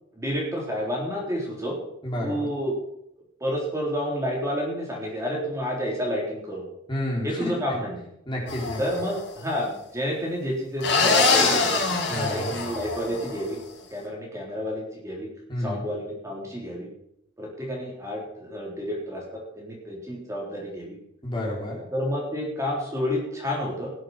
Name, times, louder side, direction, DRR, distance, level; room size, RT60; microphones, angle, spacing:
voice 1, 0.2-1.8 2.2-2.7 3.4-6.6 7.2-8.0 8.8-11.8 12.3-13.6 13.9-15.3 15.6-16.9 17.4-19.2 19.6-21.0 21.9-23.9, equal, 15° right, -3 dB, 3.6 m, -30 dB
voice 2, 2.0-2.5 6.9-7.5 8.3-8.8 12.1-12.6 15.5-15.9 21.2-21.8, left 1 dB, 25° left, -3 dB, 4.2 m, -30 dB
sound 1, 8.5-9.2 10.8-13.4, left 4 dB, 60° left, 4.5 m, -24 dB
18.5 x 7.8 x 5.9 m, 0.77 s
head